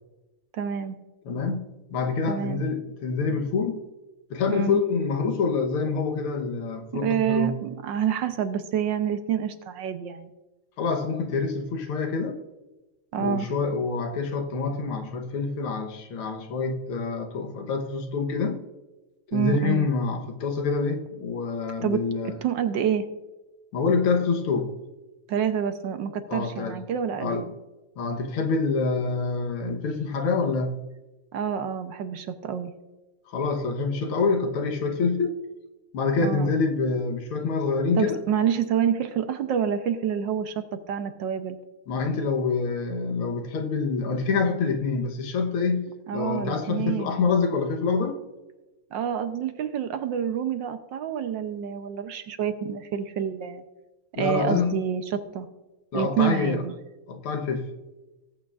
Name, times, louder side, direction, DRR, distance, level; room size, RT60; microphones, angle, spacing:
voice 1, 0.5-1.0 2.3-2.6 4.5-4.8 6.9-10.3 13.1-13.5 19.3-19.9 21.8-23.1 25.3-27.4 31.3-32.7 36.2-36.5 38.0-41.6 46.1-47.2 48.9-53.6 54.2-55.5 55.9-56.7, right 8 dB, 70° right, 1.3 m, -28 dB
voice 2, 1.3-3.9 4.3-7.5 10.8-12.4 13.2-18.6 19.3-22.3 23.7-24.8 26.3-26.8 27.2-27.5 28.0-30.8 33.3-35.4 35.9-38.2 41.9-48.2 54.2-54.8 55.9-56.6 57.1-57.8, left 4 dB, 85° left, 2.0 m, -26 dB
19.0 x 8.5 x 2.4 m
omnidirectional pair, 2.3 m